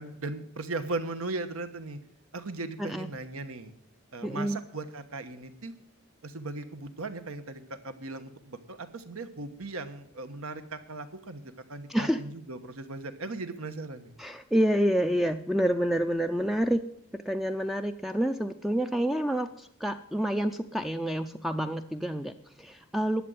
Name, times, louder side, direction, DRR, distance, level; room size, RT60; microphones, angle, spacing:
voice 1, 0.0-2.0 2.3-3.7 4.1-5.7 6.2-14.1, right 2 dB, 80° right, 9 dB, 1.3 m, -38 dB
voice 2, 2.8-3.1 4.2-4.6 11.9-12.2 14.2-16.9 17.1-23.2, equal, ahead, 7 dB, 0.4 m, -28 dB
12.0 x 7.6 x 9.3 m, 0.73 s
head